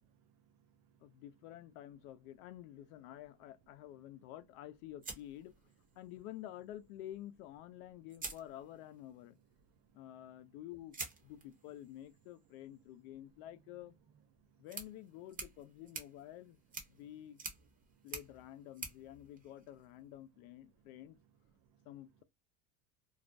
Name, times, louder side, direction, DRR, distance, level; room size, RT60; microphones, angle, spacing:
voice 1, 0.0-1.2 9.9-10.0 14.4-14.7 16.9-17.0 17.9-18.1 21.7-21.9, right 7 dB, 55° right, 0.6 m, -71 dB
voice 2, 1.0-5.6 6.0-9.4 9.9-11.0 11.2-14.0 14.6-16.6 16.9-17.4 18.0-21.2 21.9-22.2, left 13 dB, 85° left, 0.6 m, -50 dB
sound 1, 5.0-6.2 7.5-7.6 8.1-9.1 10.9-20.1, right 3 dB, 20° right, 0.7 m, -50 dB
2.4 x 2.1 x 2.4 m
supercardioid pair, 125°, 42 cm